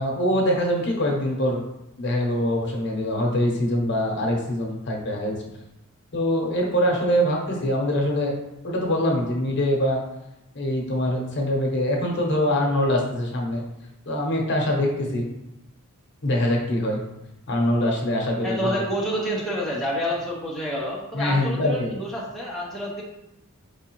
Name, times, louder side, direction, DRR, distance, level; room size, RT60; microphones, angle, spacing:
voice 1, 0.0-1.6 2.0-5.4 6.1-8.3 8.6-10.0 10.5-13.6 14.1-15.3 16.2-17.0 17.5-18.7 21.1-21.9, left 1 dB, 55° left, 0 dB, 0.9 m, -23 dB
voice 2, 18.4-23.0, equal, ahead, -5 dB, 0.6 m, -28 dB
4.8 x 3.5 x 3.0 m, 0.89 s
head